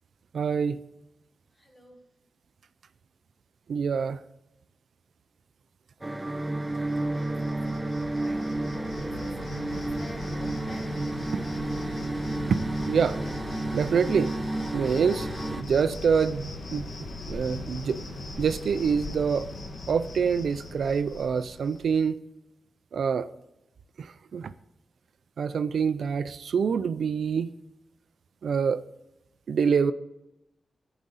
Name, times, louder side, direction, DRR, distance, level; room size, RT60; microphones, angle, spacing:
voice 1, 0.3-0.8 3.7-4.2 12.8-13.2 13.7-14.3 14.7-15.3 15.6-16.9 17.3-18.0 18.4-19.5 19.9-22.2 22.9-23.3 24.0-24.5 25.4-27.5 28.4-28.8 29.5-29.9, right 6 dB, 85° right, 13 dB, 0.4 m, -26 dB
voice 2, 1.6-2.0 6.8-10.9, equal, 15° left, 3 dB, 1.6 m, -49 dB
sound 1, 6.0-15.6, right 2 dB, 15° right, 0.6 m, -31 dB
Cricket, 6.3-22.0, left 2 dB, 75° left, 1.3 m, -39 dB
11.5 x 4.9 x 4.0 m, 0.89 s
wide cardioid pair, 90°, 0 cm